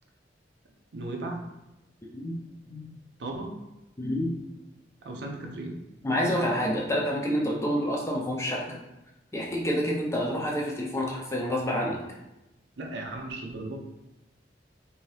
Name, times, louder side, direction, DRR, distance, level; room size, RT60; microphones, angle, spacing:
voice 1, 0.9-1.4 3.2-3.6 5.0-5.7 12.8-13.8, right 2 dB, 80° right, 2 dB, 0.5 m, -36 dB
voice 2, 4.0-4.3 6.0-8.8 9.3-12.0, equal, 15° left, -2 dB, 0.5 m, -28 dB
2.8 x 2.6 x 3.2 m, 0.94 s
head